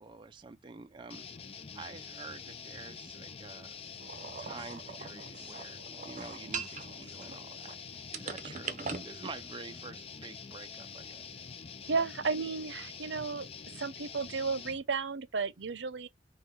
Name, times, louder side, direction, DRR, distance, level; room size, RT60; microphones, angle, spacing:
voice 1, 0.0-1.5 1.7-3.8 4.4-11.4, right 4 dB, 25° right, 0.4 m, -48 dB
sound 1, 1.1-14.8, left 6 dB, 35° left, 0.5 m, -46 dB
sound 2, 4.0-7.7 8.1-9.1, right 5 dB, 45° right, 0.8 m, -41 dB
voice 2, 11.9-13.5 13.7-16.1, right 4 dB, 85° right, 0.6 m, -33 dB
5.6 x 2.3 x 3.6 m
head